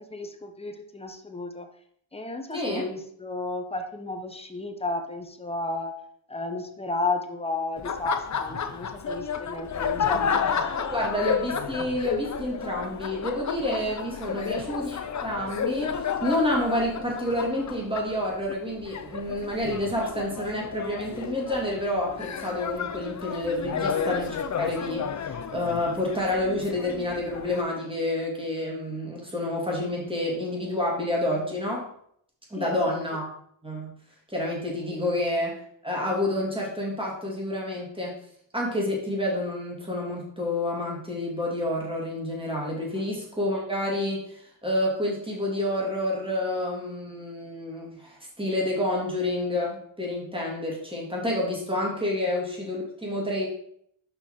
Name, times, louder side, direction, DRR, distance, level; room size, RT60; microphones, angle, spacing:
voice 1, 0.0-1.7 2.1-5.9 6.3-10.4 10.8-11.0 14.3-14.5 23.7-23.8 32.6-32.7 34.9-35.1, left 2 dB, 10° left, 5 dB, 0.9 m, -33 dB
voice 2, 2.5-2.8 10.8-31.9 32.5-33.3 33.6-33.9 34.3-35.5 35.8-38.2 38.5-53.5, left 1 dB, 10° right, -3 dB, 2.5 m, -29 dB
Laughter, 7.8-27.6, left 6 dB, 35° left, 0.6 m, -32 dB
5.7 x 5.7 x 4.4 m, 0.68 s
cardioid pair, 95°, 50 cm